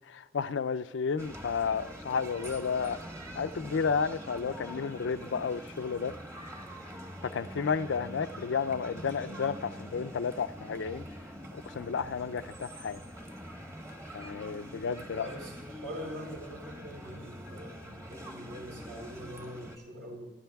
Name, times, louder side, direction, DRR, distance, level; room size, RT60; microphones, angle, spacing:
voice 1, 0.1-3.0 3.3-6.1 7.3-11.1 11.5-13.0 14.1-15.3, left 6 dB, 90° left, 0.4 m, -32 dB
sound 1, 1.2-19.8, equal, 15° right, 1.2 m, -44 dB
voice 2, 15.1-20.3, equal, 70° right, 5.0 m, -43 dB
25.0 x 12.0 x 2.3 m
head